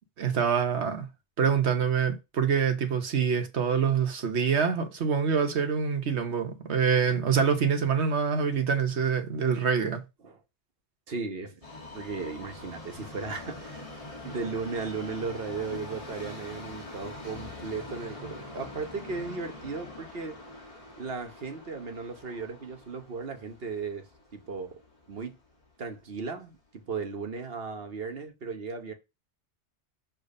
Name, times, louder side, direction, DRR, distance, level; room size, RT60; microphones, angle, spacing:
voice 1, 0.2-1.1 1.4-10.0, right 6 dB, 80° right, 1.3 m, -25 dB
voice 2, 11.1-11.6 11.9-13.9 14.2-20.4 21.0-24.0 24.3-24.8 25.1-25.4 25.8-28.9, right 4 dB, 60° right, 1.3 m, -36 dB
Subway metro underground, 11.6-25.7 26.0-26.1 27.0-27.1 27.4-27.5 28.1-28.2, left 2 dB, 30° left, 1.8 m, -44 dB
6.8 x 3.3 x 5.3 m
omnidirectional pair, 1.1 m